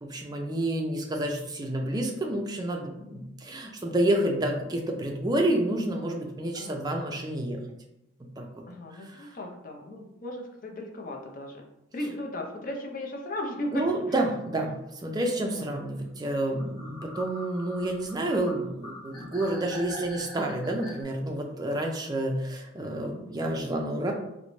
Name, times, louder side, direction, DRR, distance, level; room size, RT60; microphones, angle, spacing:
voice 1, 0.0-7.6 8.4-8.5 8.9-9.3 13.7-14.7 15.0-24.1, right 1 dB, 20° right, 1 dB, 0.4 m, -29 dB
voice 2, 8.7-11.7 11.9-13.9 15.5-15.6, left 1 dB, 45° left, 1 dB, 0.5 m, -36 dB
sound 1, 16.6-21.0, left 1 dB, 25° left, 1.0 m, -43 dB
3.8 x 2.1 x 3.0 m, 0.86 s
head